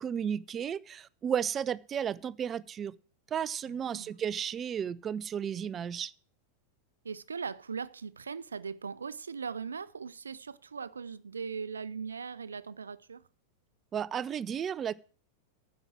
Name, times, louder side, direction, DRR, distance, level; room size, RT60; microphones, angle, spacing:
voice 1, 0.0-2.9 3.3-6.1 13.9-14.9, right 8 dB, 25° right, 0.4 m, -33 dB
voice 2, 3.7-4.1 7.0-13.3, right 5 dB, 75° right, 0.5 m, -39 dB
9.8 x 6.1 x 8.7 m
figure-of-eight pair, 90°, 0 cm